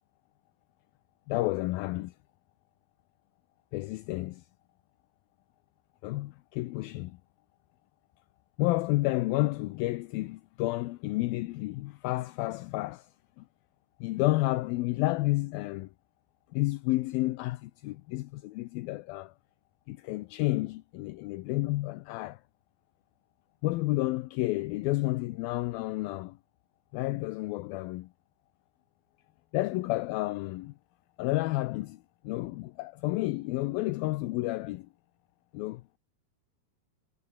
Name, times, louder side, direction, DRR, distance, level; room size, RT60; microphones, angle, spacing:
voice 1, 1.3-2.1 3.7-4.4 6.0-7.2 8.6-13.1 13.4-13.5 14.0-15.9 16.5-19.3 19.9-22.4 23.6-26.4 26.9-28.1 29.5-30.7 31.2-34.9 35.5-35.8, left 19 dB, 80° left, 2.4 m, -31 dB
omnidirectional pair, 4.4 m